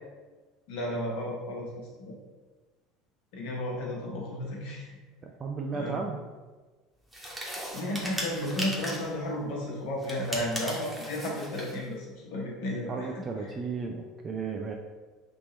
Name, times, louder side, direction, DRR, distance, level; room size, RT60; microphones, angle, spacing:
voice 1, 0.7-2.1 3.3-5.0 5.7-6.0 7.5-13.1, left 1 dB, 60° left, -2 dB, 1.1 m, -33 dB
voice 2, 5.2-6.2 12.9-14.7, right 4 dB, 30° right, 1 dB, 0.4 m, -34 dB
sound 1, 7.1-9.2 10.0-11.8, equal, 10° right, 1.1 m, -37 dB
3.5 x 2.9 x 4.1 m, 1.3 s
figure-of-eight pair, 65°, 0 cm